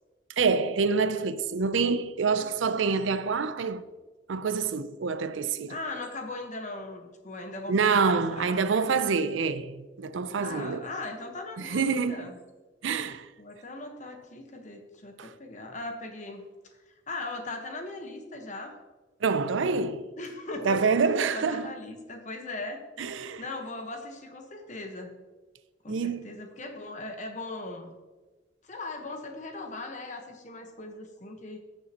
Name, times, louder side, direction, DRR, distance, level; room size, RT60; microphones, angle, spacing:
voice 1, 0.4-3.8 4.3-5.8 7.7-10.8 11.6-12.3 12.8-13.3 15.2-15.3 19.2-20.1 20.6-21.7 23.0-23.4 25.9-26.3, right 5 dB, 90° right, 0.5 m, -27 dB
voice 2, 2.3-2.8 5.7-8.6 10.4-12.4 13.4-16.4 16.7-18.8 20.2-20.8 21.1-22.8 23.4-25.2 25.8-27.9 28.6-31.6, left 2 dB, 40° left, 1.2 m, -39 dB
15.0 x 6.7 x 2.9 m
head